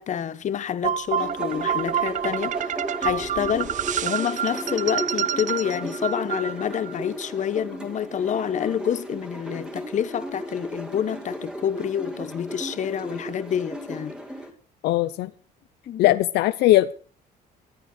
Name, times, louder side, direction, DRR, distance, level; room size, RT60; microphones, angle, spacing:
voice 1, 0.0-3.7 4.0-14.1 15.9-16.2, left 9 dB, 45° left, 1.1 m, -28 dB
sound 1, 0.8-6.9, right 9 dB, 45° right, 0.6 m, -28 dB
sound 2, 1.2-14.5, equal, 5° right, 2.2 m, -35 dB
voice 2, 14.8-15.3 16.0-16.9, left 15 dB, 80° left, 0.6 m, -19 dB
14.5 x 10.0 x 6.2 m
cardioid pair, 110°, 17 cm